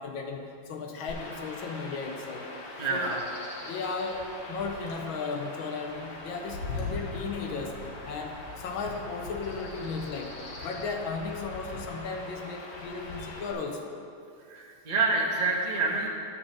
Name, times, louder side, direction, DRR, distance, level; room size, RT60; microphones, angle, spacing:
voice 1, 0.0-2.5 2.9-3.3 3.6-7.7 8.0-10.3 10.6-13.9, left 4 dB, 75° left, 3 dB, 1.5 m, -35 dB
Chirp tweet / Wind / Stream, 1.1-13.5, left 2 dB, 90° left, 2.4 m, -41 dB
voice 2, 2.8-3.2 14.5-16.1, right 3 dB, 30° right, -2 dB, 0.7 m, -27 dB
10.5 x 4.1 x 7.2 m, 2.5 s
omnidirectional pair, 2.4 m